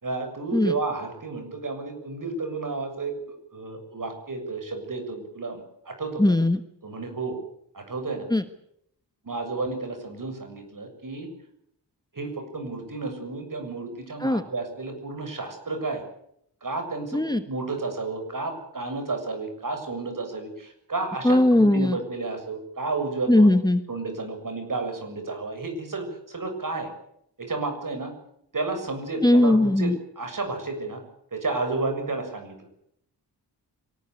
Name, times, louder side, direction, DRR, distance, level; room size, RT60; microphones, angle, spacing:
voice 1, 0.0-6.3 6.8-7.4 7.7-8.3 9.2-11.3 12.1-16.0 16.6-23.5 23.9-26.9 27.4-28.1 28.5-31.0 31.3-32.6, right 3 dB, 50° right, 6 dB, 7.0 m, -32 dB
voice 2, 6.2-6.6 8.3-8.4 14.2-14.4 17.1-17.4 21.2-22.0 23.3-23.8 29.2-30.0, left 1 dB, 10° left, 10 dB, 1.2 m, -19 dB
24.5 x 18.5 x 8.4 m, 0.74 s
wide cardioid pair, 115°, 41 cm